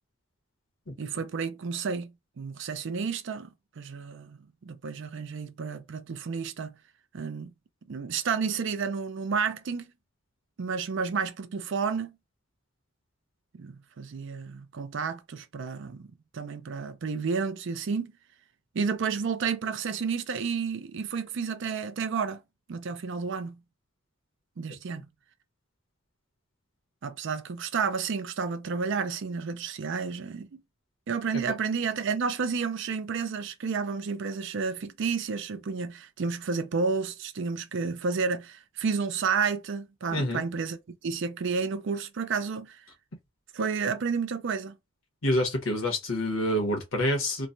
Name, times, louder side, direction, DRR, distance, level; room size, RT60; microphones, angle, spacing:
voice 1, 1.0-3.5 3.8-4.4 4.7-6.8 7.1-7.5 7.9-9.8 10.6-12.1 13.5-16.1 16.3-18.1 18.7-22.4 22.7-23.6 24.6-25.1 27.0-30.6 31.1-40.8 41.0-42.8 43.5-44.8, right 5 dB, 65° right, 0.4 m, -31 dB
voice 2, 40.1-40.4 45.2-47.5, left 1 dB, 80° left, 1.2 m, -27 dB
3.1 x 2.1 x 2.6 m
head